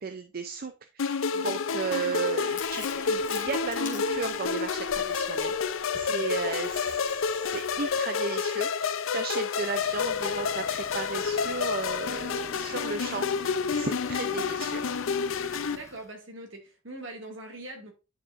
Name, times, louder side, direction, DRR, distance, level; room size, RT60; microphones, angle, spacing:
voice 1, 0.0-14.9, right 5 dB, 50° right, 0.5 m, -35 dB
sound 1, 1.0-15.8, left 6 dB, 80° left, 0.5 m, -29 dB
Chewing mastication, 2.5-8.0, left 6 dB, 40° left, 1.7 m, -46 dB
Idling, 9.6-16.1, left 1 dB, 15° left, 1.1 m, -48 dB
voice 2, 15.7-17.9, right 1 dB, 70° right, 2.1 m, -42 dB
9.9 x 4.9 x 2.5 m
head